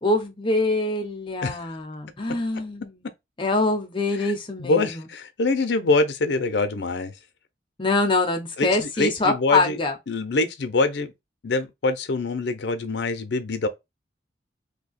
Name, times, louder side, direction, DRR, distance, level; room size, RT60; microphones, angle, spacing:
voice 1, 0.0-3.0 3.4-5.1 7.8-10.0, left 2 dB, 30° left, 0.7 m, -24 dB
voice 2, 4.6-7.1 8.6-9.8 10.1-11.1 11.4-13.7, left 3 dB, 75° left, 0.6 m, -24 dB
2.7 x 2.2 x 4.1 m
head